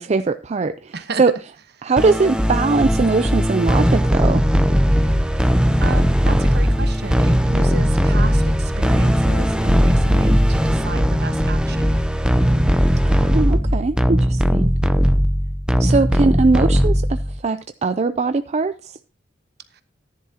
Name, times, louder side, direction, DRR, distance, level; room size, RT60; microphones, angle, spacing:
voice 1, 0.0-1.3 1.8-4.4 13.0-14.7 15.8-19.0, right 3 dB, 35° right, 0.4 m, -21 dB
sound 1, 2.0-17.4, equal, 5° right, 0.7 m, -18 dB
voice 2, 5.1-11.8 15.8-16.1 19.7-19.8, right 3 dB, 60° right, 1.2 m, -33 dB
14.5 x 10.5 x 2.9 m
head